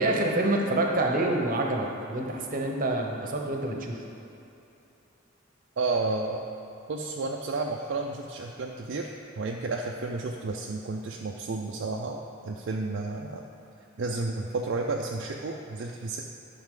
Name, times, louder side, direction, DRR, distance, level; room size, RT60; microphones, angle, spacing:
voice 1, 0.0-4.0, right 2 dB, 45° right, 1 dB, 0.9 m, -27 dB
voice 2, 5.8-6.4 6.9-13.5 14.0-16.2, right 3 dB, 60° right, 0 dB, 0.5 m, -32 dB
10.5 x 5.7 x 3.8 m, 2.8 s
head